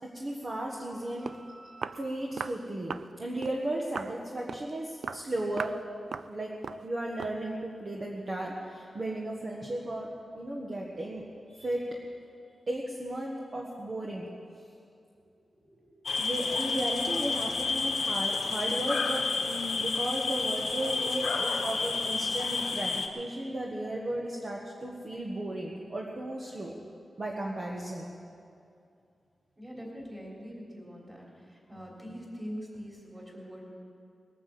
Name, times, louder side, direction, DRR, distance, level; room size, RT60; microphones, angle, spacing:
voice 1, 0.1-5.7 6.3-6.5 6.8-11.9 12.7-14.3 16.2-26.8 27.2-28.1, right 1 dB, 35° right, -2 dB, 1.4 m, -35 dB
Walk footsteps, 0.9-1.0 1.3-1.4 1.8-2.0 2.4-2.6 2.9-3.1 3.4-3.6 4.0-4.2 4.5-4.7 5.0-5.3 5.6-5.8 6.1-6.3 6.6-6.9 7.2-7.4, right 5 dB, 70° right, 0.4 m, -37 dB
sound 1, 16.1-23.1, left 4 dB, 70° left, 1.3 m, -30 dB
voice 2, 29.6-33.7, equal, 15° right, -3 dB, 3.4 m, -43 dB
19.5 x 9.0 x 7.8 m, 2.5 s
wide cardioid pair, 170°, 0 cm